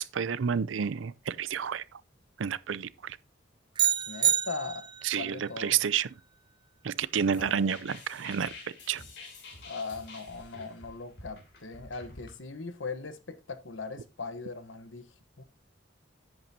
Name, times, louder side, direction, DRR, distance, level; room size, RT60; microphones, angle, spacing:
voice 1, 0.0-2.0 2.4-3.2 5.0-6.1 6.8-8.5 8.9-9.0, right 7 dB, 80° right, 0.5 m, -30 dB
sound 1, 3.8-5.2, right 10 dB, 25° right, 0.4 m, -27 dB
voice 2, 4.1-4.8 5.2-5.7 7.4-7.7 9.6-15.0 15.4-15.5, left 4 dB, 85° left, 1.1 m, -39 dB
sound 2, 6.9-12.3, left 3 dB, 60° left, 3.1 m, -48 dB
10.5 x 8.8 x 2.8 m
head